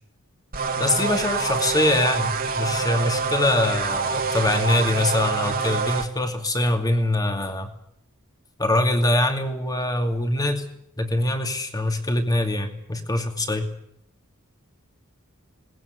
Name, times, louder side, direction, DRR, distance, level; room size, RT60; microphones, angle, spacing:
sound 1, 0.5-6.1, right 4 dB, 45° right, 2.6 m, -26 dB
voice 1, 0.8-7.7 8.6-10.6 11.0-13.7, left 1 dB, 15° left, 6 dB, 2.6 m, -23 dB
20.5 x 19.0 x 9.6 m, 0.71 s
head